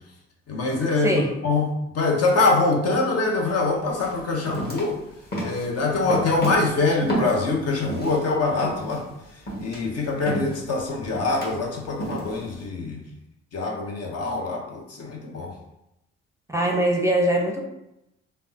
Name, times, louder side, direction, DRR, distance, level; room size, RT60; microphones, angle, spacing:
voice 1, 0.5-5.0 5.4-9.1 9.6-13.0 13.5-15.5, left 3 dB, 50° left, 1 dB, 0.8 m, -24 dB
voice 2, 1.0-1.3 16.5-17.6, right 1 dB, 10° right, 0 dB, 0.6 m, -22 dB
sound 1, 3.4-3.6 4.0-8.2 8.6-12.6, right 1 dB, 30° left, 1.4 m, -31 dB
3.3 x 2.1 x 2.7 m, 0.87 s
hypercardioid pair, 50°, 32 cm